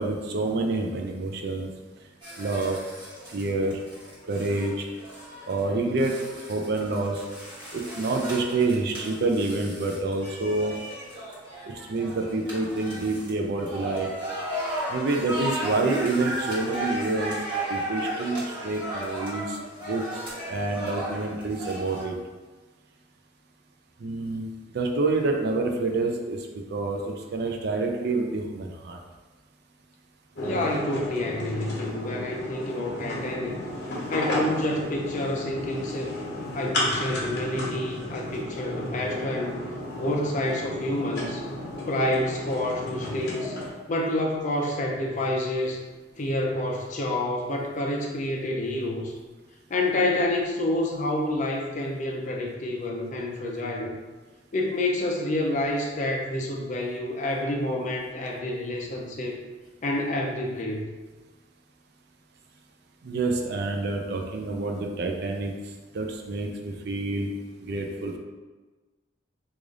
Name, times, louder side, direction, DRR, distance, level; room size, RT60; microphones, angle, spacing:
voice 1, 0.0-1.7 2.4-2.8 3.3-3.7 4.3-4.9 5.5-6.1 6.5-7.2 7.7-10.7 11.9-14.1 14.9-17.4 17.7-19.6 19.9-20.0 20.5-22.1 24.0-24.5 24.7-26.4 26.7-29.0 63.0-65.5 65.9-67.3 67.6-68.2, right 3 dB, 60° right, 2 dB, 0.4 m, -27 dB
sound 1, 2.2-22.1, right 1 dB, 25° right, 1.3 m, -35 dB
sound 2, 30.4-43.7, left 1 dB, 60° left, 0.9 m, -33 dB
voice 2, 30.4-33.6 34.1-36.1 36.5-39.6 39.9-41.4 41.9-43.5 43.9-45.8 46.2-49.2 49.7-53.9 54.5-59.4 59.8-60.8, left 1 dB, 40° left, 0 dB, 0.5 m, -28 dB
3.3 x 2.5 x 3.7 m, 1.3 s
head